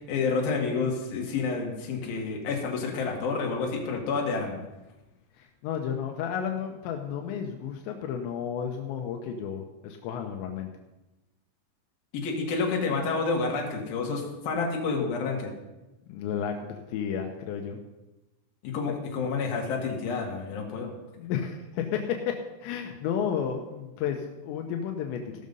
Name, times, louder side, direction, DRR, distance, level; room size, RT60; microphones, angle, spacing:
voice 1, 0.1-4.6 12.1-15.5 18.6-20.9, left 4 dB, 60° left, -1 dB, 3.5 m, -29 dB
voice 2, 5.4-10.7 16.1-17.8 21.2-25.5, left 8 dB, 85° left, 3 dB, 3.2 m, -32 dB
16.5 x 6.4 x 5.4 m, 1.0 s
omnidirectional pair, 5.1 m